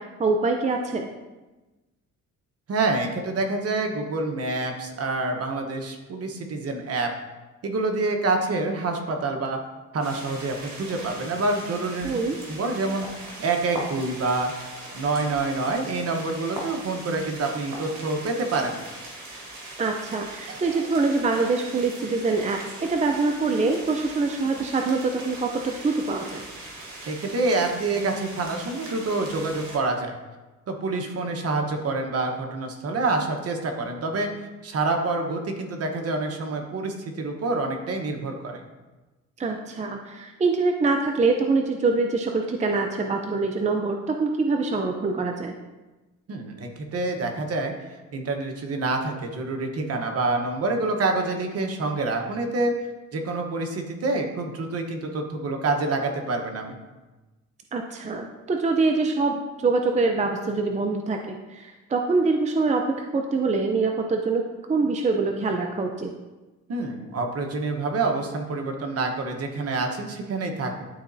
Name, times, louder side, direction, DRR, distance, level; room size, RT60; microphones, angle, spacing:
voice 1, 0.2-1.1 12.0-12.4 19.8-26.5 39.4-45.5 57.7-66.1, right 3 dB, 25° right, 3 dB, 0.6 m, -24 dB
voice 2, 2.7-7.1 7.6-9.6 9.9-12.2 12.5-14.5 14.9-18.8 20.5-20.8 27.1-30.2 30.7-34.3 34.6-38.6 46.3-52.7 53.1-56.8 66.7-70.8, right 3 dB, 50° right, 4 dB, 1.1 m, -27 dB
sound 1, 10.0-29.8, right 2 dB, 70° right, 1.8 m, -40 dB
11.0 x 4.0 x 2.7 m, 1.1 s
cardioid pair, 90°, 30 cm